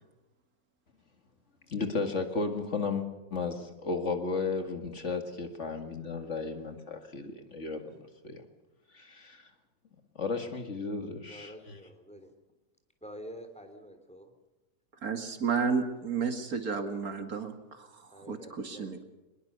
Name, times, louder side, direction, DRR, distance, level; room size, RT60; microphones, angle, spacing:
voice 1, 1.7-8.4 8.9-9.5 10.2-11.8, left 4 dB, 55° left, 6 dB, 2.4 m, -34 dB
voice 2, 11.3-12.3 13.0-14.3 18.1-19.0, equal, 5° left, 6 dB, 3.1 m, -47 dB
voice 3, 15.0-19.0, right 5 dB, 85° right, 6 dB, 2.6 m, -32 dB
22.5 x 21.0 x 6.8 m, 1.0 s
omnidirectional pair, 1.5 m